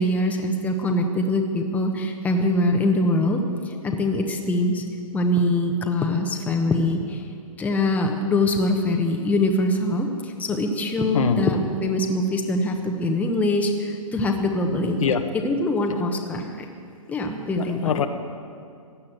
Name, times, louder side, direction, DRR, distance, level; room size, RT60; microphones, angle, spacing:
voice 1, 0.0-4.8 5.1-7.2 7.6-16.7 17.1-18.1, left 1 dB, 10° left, 3 dB, 1.0 m, -23 dB
voice 2, 17.6-18.1, left 7 dB, 65° left, 7 dB, 1.2 m, -22 dB
15.5 x 9.8 x 7.8 m, 2.4 s
hypercardioid pair, 135°, 18 cm